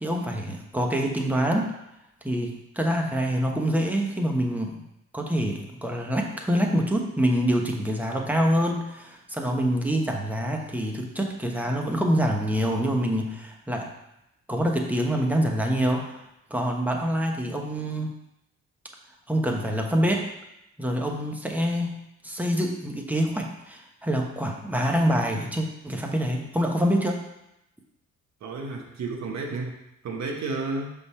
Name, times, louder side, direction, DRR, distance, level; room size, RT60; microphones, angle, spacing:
voice 1, 0.0-1.8 2.2-4.8 5.1-13.9 14.5-16.2 16.5-18.1 19.3-20.3 20.8-27.2, equal, 5° right, 1 dB, 1.1 m, -26 dB
voice 2, 28.4-29.8 30.0-30.9, right 3 dB, 65° right, 1 dB, 1.3 m, -31 dB
5.8 x 3.7 x 5.5 m, 0.86 s
cardioid pair, 90°, 30 cm